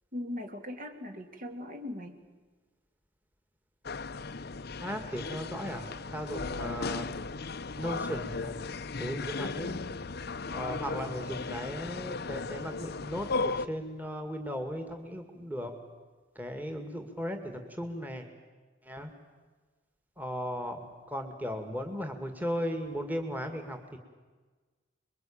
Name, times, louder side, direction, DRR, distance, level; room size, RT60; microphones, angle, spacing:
voice 1, 0.1-2.2, left 1 dB, 45° right, 5 dB, 2.6 m, -39 dB
sound 1, 3.8-13.7, left 3 dB, 55° left, 0.8 m, -36 dB
voice 2, 4.8-7.2 7.8-8.6 9.0-9.8 10.5-15.7 16.4-18.3 18.8-19.1 20.2-20.8 21.1-23.8, equal, 10° right, 5 dB, 2.2 m, -36 dB
27.5 x 22.5 x 8.9 m, 1.3 s
head